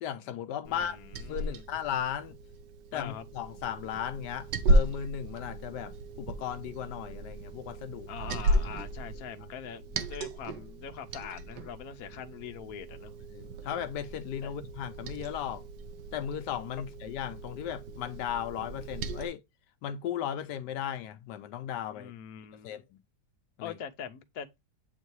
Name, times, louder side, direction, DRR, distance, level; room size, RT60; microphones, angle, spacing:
voice 1, 0.0-1.0 1.3-2.4 2.9-8.1 13.3-15.6 16.1-19.4 19.8-22.1 22.6-22.8 23.6-23.7, left 9 dB, 85° left, 1.2 m, -36 dB
voice 2, 0.7-1.6 2.9-3.2 8.1-13.1 14.4-14.6 21.9-22.8 23.6-24.6, left 8 dB, 65° left, 1.2 m, -43 dB
Liquid, 0.7-19.3, right 1 dB, 90° right, 1.4 m, -34 dB
8.1 x 2.8 x 4.6 m
omnidirectional pair, 1.8 m